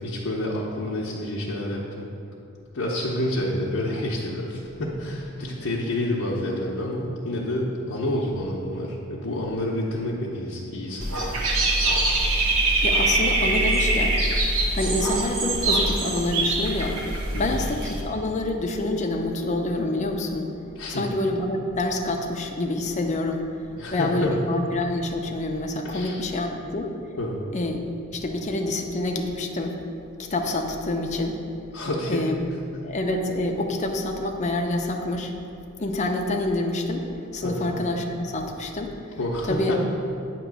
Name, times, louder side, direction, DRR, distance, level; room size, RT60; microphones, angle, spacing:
voice 1, 0.0-2.1 2.7-11.4 17.3-17.6 20.8-21.1 23.7-24.4 25.8-26.2 27.2-27.4 31.7-32.3 37.4-37.7 39.2-39.8, left 1 dB, 70° left, -6 dB, 0.7 m, -28 dB
Dog / Bird, 11.0-18.0, right 2 dB, 75° right, 1.0 m, -23 dB
voice 2, 12.8-14.2 14.7-17.0 17.4-20.5 20.9-23.5 23.9-26.9 27.5-27.8 28.1-29.8 30.2-31.4 32.1-32.4 32.8-35.3 35.8-39.2 39.5-39.7, left 2 dB, 35° left, 2 dB, 0.6 m, -27 dB
8.8 x 3.0 x 6.1 m, 2.6 s
head